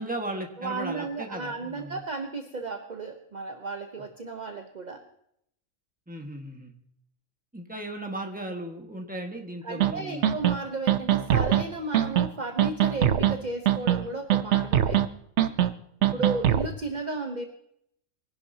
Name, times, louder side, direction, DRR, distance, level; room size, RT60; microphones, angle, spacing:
voice 1, 0.0-2.0 6.1-6.7 7.5-10.3 16.0-16.3, right 1 dB, 5° right, 3 dB, 1.5 m, -36 dB
voice 2, 0.6-5.0 9.6-15.0 16.1-17.5, right 3 dB, 35° right, 5 dB, 1.0 m, -34 dB
sound 1, 9.8-9.9 10.2-10.6 10.9-11.6 11.9-12.3 12.6-13.3 13.7-14.0 14.3-15.1 15.4-15.7 16.0-16.7, right 11 dB, 65° right, 1.0 m, -22 dB
22.0 x 11.0 x 2.8 m, 0.73 s
omnidirectional pair, 1.4 m